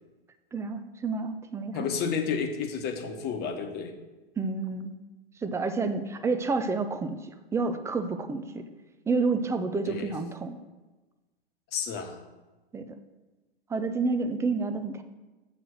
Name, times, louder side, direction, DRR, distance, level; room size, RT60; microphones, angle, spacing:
voice 1, 0.5-1.9 4.4-4.9 5.4-8.7 9.1-10.6 12.7-13.0 13.7-15.0, right 4 dB, 10° right, 8 dB, 0.4 m, -29 dB
voice 2, 1.7-3.9 9.9-10.1 11.7-12.2, left 6 dB, 35° left, 5 dB, 1.2 m, -31 dB
7.7 x 4.9 x 6.2 m, 1.2 s
hypercardioid pair, 125°, 30 cm